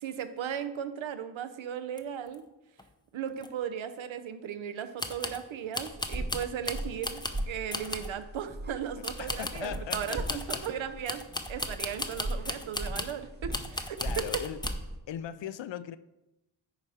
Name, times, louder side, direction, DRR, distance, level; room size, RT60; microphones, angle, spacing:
voice 1, 0.0-2.4 3.1-14.4, right 9 dB, 75° right, 0.8 m, -36 dB
sound 1, 2.0-2.1 2.3-2.4 2.8-2.9 3.4-3.5 5.0-5.4 5.7-7.4 7.7-8.2 9.0-10.7 11.1-13.2 13.5-14.8, left 2 dB, 10° left, 0.5 m, -36 dB
sound 2, 5.9-15.0, right 1 dB, 20° right, 0.8 m, -39 dB
voice 2, 9.0-10.6 14.0-14.6 15.1-16.0, left 10 dB, 65° left, 0.5 m, -39 dB
10.0 x 4.2 x 4.8 m
wide cardioid pair, 110°, 48 cm